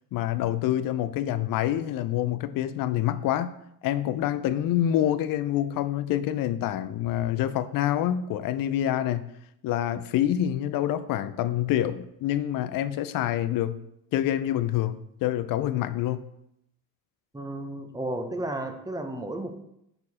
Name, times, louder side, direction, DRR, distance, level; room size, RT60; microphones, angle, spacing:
voice 1, 0.1-3.5 3.8-9.2 9.6-13.8 14.1-16.2, left 12 dB, 45° left, 0.5 m, -26 dB
voice 2, 17.3-19.6, right 1 dB, 10° right, 0.8 m, -33 dB
6.7 x 4.4 x 4.2 m
supercardioid pair, 95°, 46 cm